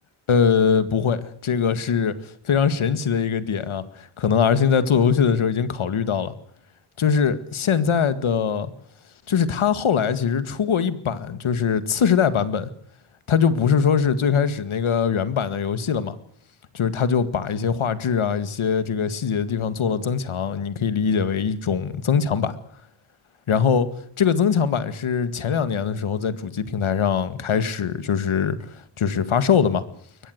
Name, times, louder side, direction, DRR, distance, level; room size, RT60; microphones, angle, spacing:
voice 1, 0.3-6.3 7.0-8.7 9.3-12.7 13.3-16.2 16.7-22.5 23.5-23.9 24.2-28.6 29.0-29.8, left 7 dB, 80° left, 13 dB, 2.0 m, -22 dB
22.5 x 20.5 x 8.0 m, 0.62 s
wide cardioid pair, 105°, 48 cm